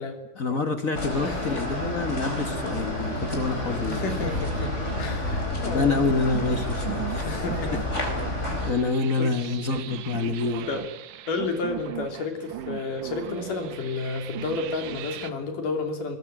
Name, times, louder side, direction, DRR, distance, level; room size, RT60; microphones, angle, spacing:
voice 1, 0.3-4.4 5.6-7.4 7.7-7.8 8.4-10.7, left 4 dB, 50° left, 9 dB, 1.0 m, -27 dB
sound 1, 0.9-8.7, left 1 dB, 20° left, 4.6 m, -30 dB
sound 2, 1.1-15.3, right 12 dB, 80° right, 2.7 m, -39 dB
voice 2, 3.9-6.0 7.2-7.8 8.4-8.7 9.2-9.3 10.7-10.9 11.3-16.2, left 3 dB, 90° left, 6 dB, 4.8 m, -31 dB
21.5 x 19.5 x 9.2 m, 0.86 s
omnidirectional pair, 3.6 m